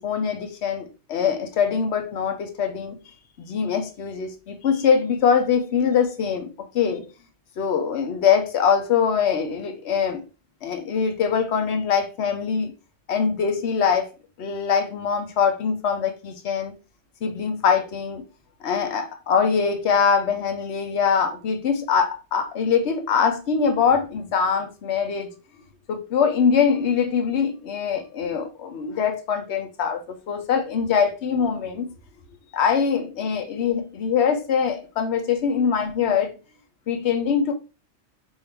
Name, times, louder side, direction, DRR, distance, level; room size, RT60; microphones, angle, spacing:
voice 1, 0.0-3.0 3.4-6.5 6.7-7.0 7.6-10.2 10.6-12.7 13.1-14.1 14.4-16.7 17.2-18.2 18.6-25.4 25.9-31.9 32.5-36.3 36.9-37.5, left 6 dB, 65° left, 1.1 m, -23 dB
5.5 x 2.7 x 3.4 m
omnidirectional pair, 1.2 m